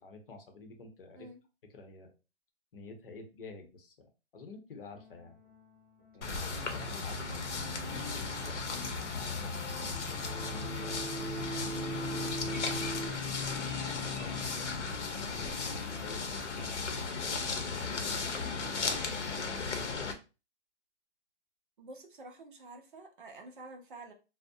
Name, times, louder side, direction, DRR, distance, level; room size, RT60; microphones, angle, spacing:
voice 1, 0.0-1.3 1.7-2.1 2.7-5.4 6.1-9.6 10.0-11.3 11.6-12.7 13.4-14.9 15.3-20.0, left 3 dB, 50° left, 4 dB, 0.7 m, -50 dB
sound 1, 4.9-19.0, left 2 dB, ahead, 0.9 m, -54 dB
sound 2, 6.2-20.1, left 4 dB, 85° left, 0.7 m, -36 dB
sound 3, 6.2-13.1, right 3 dB, 20° left, 1.0 m, -42 dB
voice 2, 21.8-24.1, right 2 dB, 45° right, 4 dB, 0.5 m, -49 dB
2.4 x 2.0 x 2.5 m, 0.30 s
hypercardioid pair, 160°, 35 cm